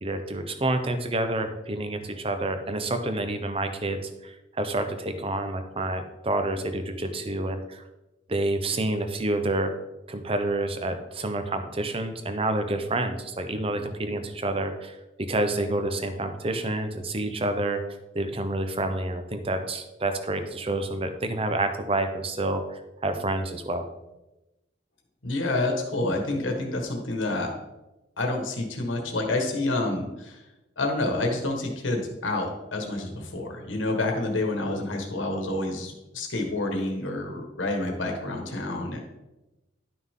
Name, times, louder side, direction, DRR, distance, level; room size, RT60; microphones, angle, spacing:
voice 1, 0.0-7.8 8.3-9.7 10.1-17.8 18.1-23.8, right 2 dB, 30° right, 8 dB, 0.8 m, -28 dB
voice 2, 25.2-27.5 28.2-30.4 30.8-39.0, left 2 dB, 85° left, 2 dB, 1.6 m, -28 dB
11.0 x 5.9 x 3.7 m, 1.0 s
head